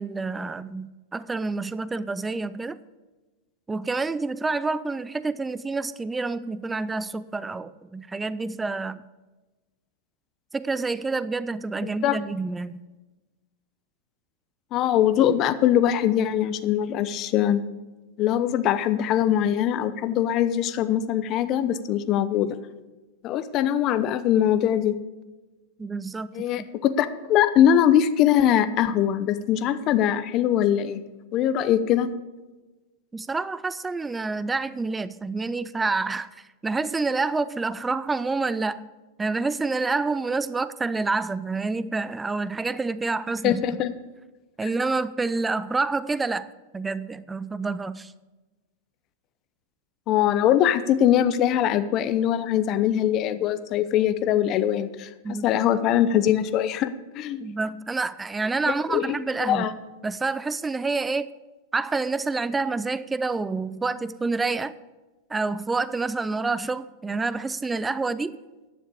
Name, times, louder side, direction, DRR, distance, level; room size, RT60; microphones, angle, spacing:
voice 1, 0.0-2.8 3.7-9.0 10.5-12.8 25.8-26.7 33.1-38.9 39.2-43.8 44.6-48.1 55.2-55.6 57.4-59.7 60.0-61.3 61.7-64.7 65.3-68.4, right 3 dB, 15° right, 16 dB, 0.4 m, -28 dB
voice 2, 11.8-12.2 14.7-17.6 18.2-22.5 23.2-25.0 26.3-31.0 31.3-32.1 43.4-43.9 44.6-44.7 50.1-55.1 55.4-57.4 58.9-59.1 59.4-59.7, left 10 dB, 40° left, 12 dB, 0.8 m, -22 dB
10.5 x 7.3 x 8.5 m, 1.1 s
hypercardioid pair, 115°, 0 cm